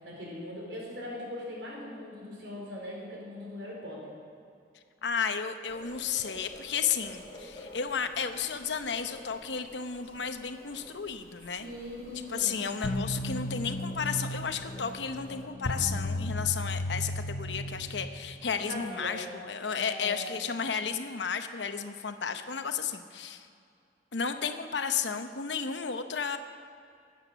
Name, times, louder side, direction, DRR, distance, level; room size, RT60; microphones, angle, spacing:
voice 1, 0.0-4.1 11.6-12.7 18.5-19.3 19.7-20.5 24.4-24.5, left 1 dB, 85° right, -3 dB, 4.6 m, -40 dB
voice 2, 5.0-11.7 12.1-23.5 24.1-26.4, left 6 dB, 85° left, 8 dB, 0.9 m, -33 dB
sound 1, 5.7-15.5, left 1 dB, 25° left, 2.3 m, -51 dB
sound 2, 12.8-18.4, left 1 dB, 50° left, 0.8 m, -34 dB
17.5 x 8.7 x 7.0 m, 2.5 s
head